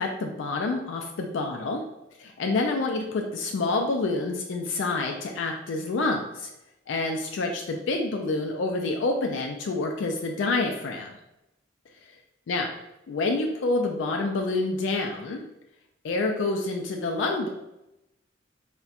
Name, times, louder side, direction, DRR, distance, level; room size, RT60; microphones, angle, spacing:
voice 1, 0.0-1.8 2.2-6.5 6.9-11.2 12.1-12.2 12.5-12.7 13.1-15.4 16.0-17.5, left 3 dB, 80° left, 2 dB, 0.4 m, -27 dB
4.1 x 2.1 x 2.4 m, 0.89 s
head